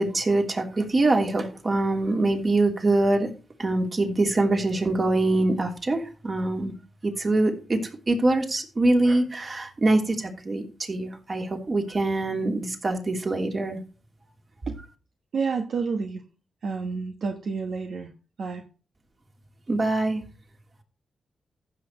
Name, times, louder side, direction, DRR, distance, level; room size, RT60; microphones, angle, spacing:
voice 1, 0.0-3.3 3.6-6.7 7.0-7.8 8.1-13.8 19.7-20.2, right 2 dB, 40° right, 3 dB, 3.1 m, -24 dB
voice 2, 15.3-16.2 16.6-18.1 18.4-18.6, right 5 dB, 70° right, 3 dB, 1.2 m, -29 dB
15.0 x 6.5 x 3.1 m, 0.34 s
supercardioid pair, 55°, 0 cm